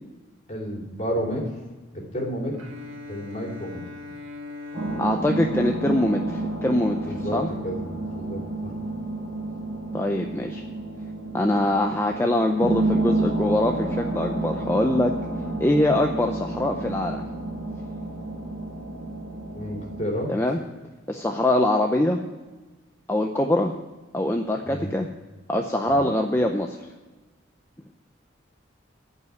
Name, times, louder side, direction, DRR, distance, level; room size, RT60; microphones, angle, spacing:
voice 1, 0.5-1.4 1.9-2.6 3.1-3.8 7.0-8.7 19.5-20.3 24.6-24.9 25.9-26.1, equal, 35° left, -1 dB, 2.8 m, -31 dB
Bowed string instrument, 2.5-6.6, left 3 dB, 85° right, 1.6 m, -41 dB
sound 1, 4.7-20.0, right 2 dB, 25° right, 3.7 m, -30 dB
voice 2, 5.0-7.5 9.9-10.6 11.3-15.1 15.6-17.2 20.3-20.6 21.1-22.2 23.1-23.7 24.1-25.1 25.5-26.8, left 1 dB, 10° left, 3 dB, 0.5 m, -23 dB
14.5 x 5.5 x 9.6 m, 1.2 s
head